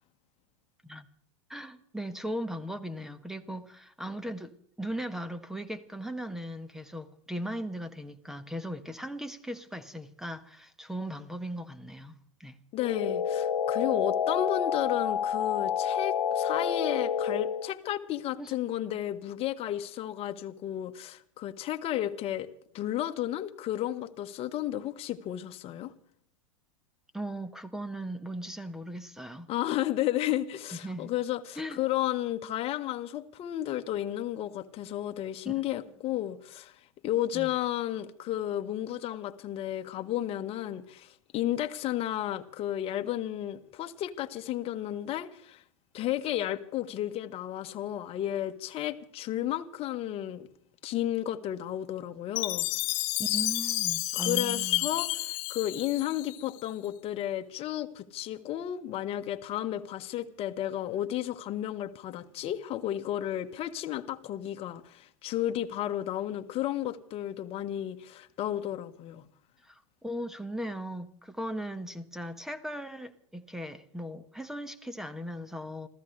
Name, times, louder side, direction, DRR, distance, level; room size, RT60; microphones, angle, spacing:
voice 1, 1.5-12.1 12.4-12.6 18.4-18.5 27.1-29.5 30.8-31.1 31.6-31.8 35.4-35.5 37.3-37.5 53.2-54.9 69.6-75.9, equal, 5° right, 1.1 m, -38 dB
voice 2, 12.7-22.5 22.7-25.9 29.5-36.7 37.0-45.6 45.9-50.5 50.8-52.7 54.1-69.3, left 12 dB, 35° left, 1.3 m, -33 dB
sound 1, 12.8-17.7, left 8 dB, 80° left, 0.8 m, -29 dB
Chime, 52.4-56.6, left 20 dB, 50° left, 1.1 m, -30 dB
27.0 x 15.0 x 3.3 m
hypercardioid pair, 105°, 17 cm